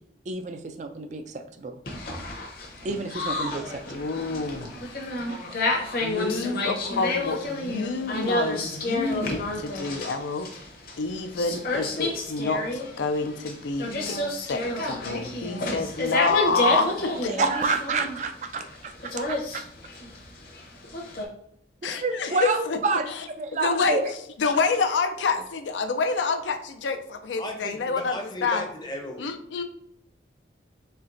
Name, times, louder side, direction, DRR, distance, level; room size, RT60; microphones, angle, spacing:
voice 1, 0.3-1.8 2.8-4.0 17.3-19.6 21.8-23.1 23.4-24.1, right 3 dB, 40° right, 7 dB, 0.3 m, -29 dB
sound 1, 1.9-21.2, left 2 dB, 55° left, 0.8 m, -30 dB
voice 2, 3.9-4.9 6.0-10.5 11.0-17.4 21.8-22.8 23.1-23.2 23.5-24.0 24.4-28.6 29.2-29.6, left 4 dB, 90° left, 7 dB, 0.5 m, -28 dB
voice 3, 27.4-29.2, left 1 dB, 25° left, 2 dB, 0.6 m, -35 dB
4.4 x 3.2 x 2.5 m, 0.74 s
head